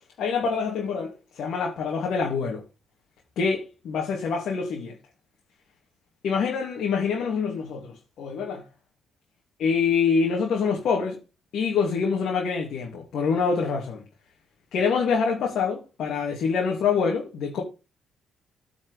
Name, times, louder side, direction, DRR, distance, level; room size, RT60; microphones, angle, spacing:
voice 1, 0.2-2.6 3.4-5.0 6.2-8.6 9.6-11.2 11.5-14.0 14.7-17.6, left 5 dB, 70° left, 2.6 m, -25 dB
8.9 x 5.4 x 4.9 m
cardioid pair, 90°, 0 cm